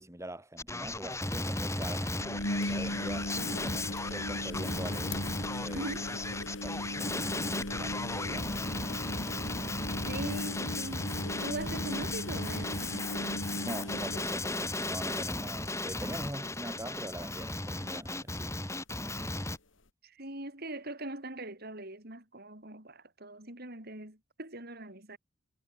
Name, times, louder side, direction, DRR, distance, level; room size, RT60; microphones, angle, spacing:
voice 1, 0.0-3.3 3.6-5.8 6.6-9.0 13.6-18.6, right 1 dB, 15° right, 6.2 m, -43 dB
Male speech man speaking, 0.6-19.6, left 2 dB, 15° left, 7.1 m, -35 dB
sound 1, 0.9-1.0 1.1-1.2 2.1-15.2 15.6-16.0 16.3-16.4 18.2-18.3, left 1 dB, 70° left, 3.3 m, -38 dB
voice 2, 5.7-6.1 10.0-11.1 11.4-13.3 20.0-25.2, right 1 dB, 50° right, 7.6 m, -41 dB
head